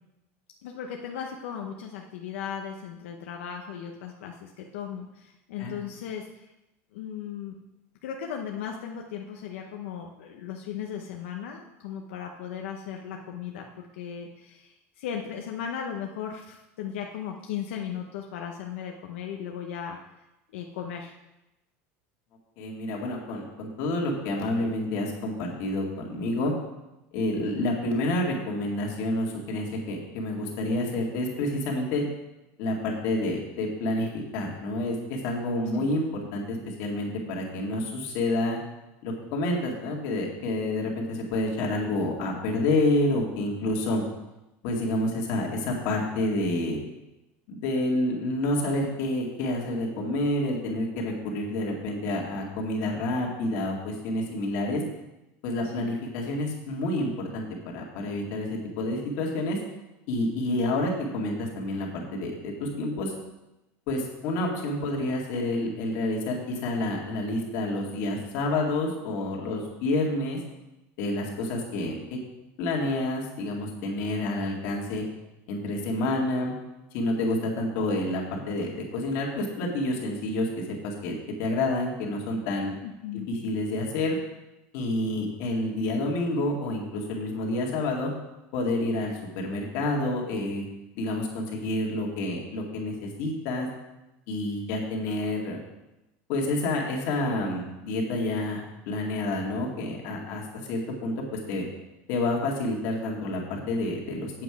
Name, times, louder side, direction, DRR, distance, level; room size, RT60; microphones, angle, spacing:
voice 1, 0.6-6.5 6.9-7.6 8.0-20.0 20.5-21.1 27.4-27.7 35.7-35.9 55.6-56.0 82.8-83.3, left 8 dB, 85° left, 2 dB, 0.9 m, -37 dB
voice 2, 22.6-26.5 27.1-32.0 32.6-38.6 39.0-44.0 44.6-46.8 47.5-54.8 55.4-59.6 60.1-63.1 63.9-70.4 71.0-72.2 72.6-75.0 75.5-76.5 76.9-81.1 81.4-82.7 83.3-84.2 84.7-88.1 88.5-90.6 91.0-93.7 94.3-95.6 96.3-100.4 100.7-101.7 102.1-104.4, left 1 dB, 50° left, -1 dB, 2.0 m, -29 dB
8.3 x 7.7 x 4.8 m, 0.95 s
supercardioid pair, 180°, 7 cm